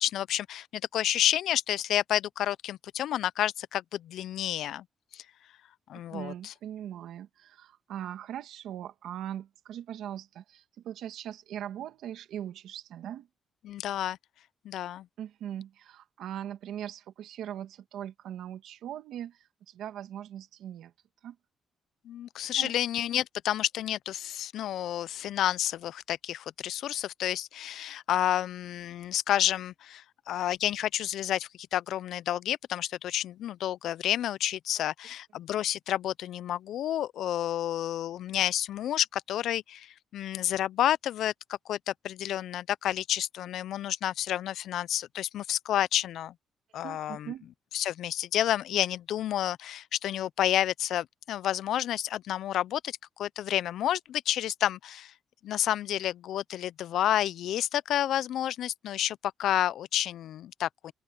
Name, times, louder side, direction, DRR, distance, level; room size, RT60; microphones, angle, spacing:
voice 1, 0.0-4.8 5.1-5.2 5.9-6.5 13.6-14.2 14.6-15.1 22.1-41.3 41.7-46.3 46.7-47.3 47.7-55.1 55.4-60.9, left 12 dB, 75° left, 0.4 m, -30 dB
voice 2, 6.1-13.3 15.2-20.9 21.2-21.4 22.5-22.7 46.8-47.5, right 10 dB, 80° right, 2.1 m, -40 dB
open air
cardioid pair, 90°, 0 cm